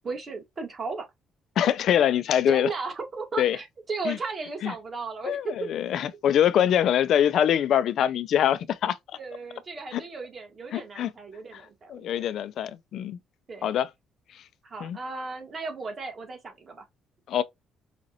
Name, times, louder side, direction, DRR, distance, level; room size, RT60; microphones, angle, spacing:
voice 1, 0.0-1.0 2.5-5.7 9.1-12.2 13.5-13.7 14.6-16.8, right 4 dB, 40° right, 1.7 m, -35 dB
voice 2, 1.6-2.7 3.4-3.6 4.0-4.2 4.6-4.7 5.2-9.0 9.9-10.0 10.7-11.1 11.5-11.6 11.9-13.2 13.6-13.9 14.8-15.0 17.3-17.4, left 10 dB, 70° left, 0.5 m, -24 dB
5.0 x 2.5 x 2.9 m
cardioid pair, 85°, 0 cm